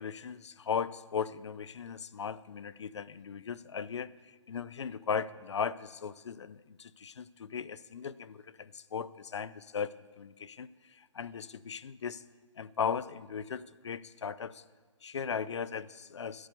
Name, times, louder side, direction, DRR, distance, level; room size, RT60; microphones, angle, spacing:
voice 1, 0.0-4.1 4.5-12.2 12.6-14.6 15.0-16.5, left 6 dB, 60° left, 18 dB, 0.5 m, -37 dB
11.5 x 8.5 x 6.7 m, 1.4 s
hypercardioid pair, 170°, 16 cm